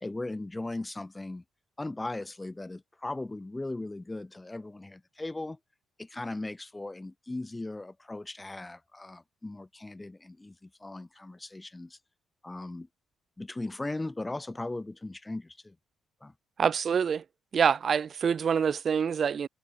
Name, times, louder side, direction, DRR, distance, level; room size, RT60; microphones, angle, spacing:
voice 1, 0.0-1.4 1.8-5.6 6.0-12.0 12.4-12.9 13.4-15.7 16.2-16.3, left 2 dB, 15° left, 1.5 m, -38 dB
voice 2, 16.6-17.2 17.5-19.5, right 7 dB, 50° right, 1.1 m, -26 dB
cardioid pair, 90°, 0 cm